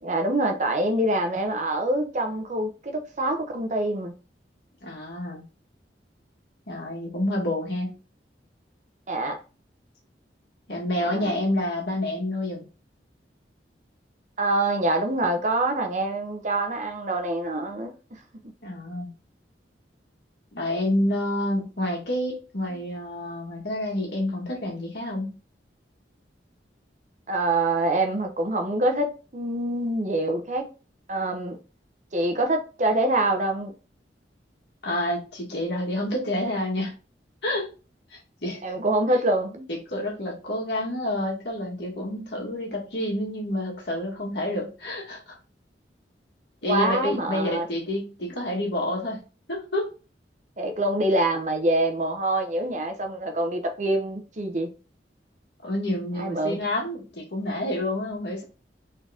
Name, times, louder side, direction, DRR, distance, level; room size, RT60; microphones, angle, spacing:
voice 1, 0.0-4.1 9.1-9.4 11.0-11.4 14.4-17.9 22.7-22.8 27.3-30.7 31.1-31.6 32.1-33.7 38.6-39.7 46.6-47.7 50.6-54.7 56.2-56.6, right 2 dB, 45° right, 0.9 m, -25 dB
voice 2, 4.8-5.4 6.7-7.9 10.7-12.6 18.6-19.1 20.5-25.3 34.8-36.9 37.4-37.7 38.1-38.6 39.7-45.4 46.6-49.2 49.5-49.9 55.6-58.4, left 1 dB, 70° left, 1.8 m, -28 dB
4.0 x 3.9 x 3.4 m
head